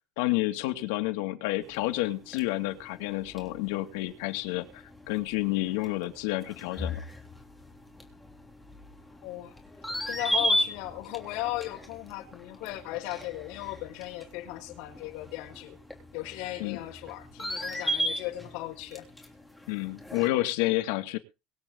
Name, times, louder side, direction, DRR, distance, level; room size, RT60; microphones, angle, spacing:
voice 1, 0.2-7.0 16.6-16.8 19.7-21.2, left 17 dB, 85° left, 2.3 m, -30 dB
sound 1, 1.6-20.3, left 1 dB, ahead, 3.3 m, -37 dB
voice 2, 9.2-9.5 10.1-15.8 16.1-19.1, left 16 dB, 65° left, 5.2 m, -37 dB
23.5 x 8.5 x 3.9 m
cardioid pair, 175°, 0 cm